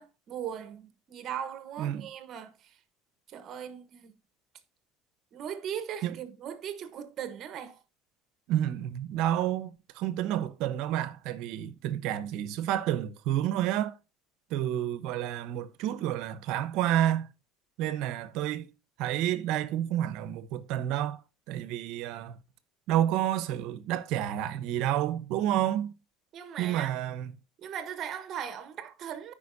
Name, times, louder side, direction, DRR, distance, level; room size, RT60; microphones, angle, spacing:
voice 1, 0.0-2.5 3.3-4.1 5.3-7.8 26.3-27.0 27.6-29.3, right 9 dB, 45° right, 1.1 m, -38 dB
voice 2, 1.8-2.1 6.0-6.2 8.5-14.0 14.5-17.3 17.8-18.7 19.0-21.2 21.5-22.4 22.9-25.9 26.6-27.3, right 12 dB, 70° right, 0.9 m, -30 dB
14.5 x 5.2 x 2.6 m
cardioid pair, 140°, 0 cm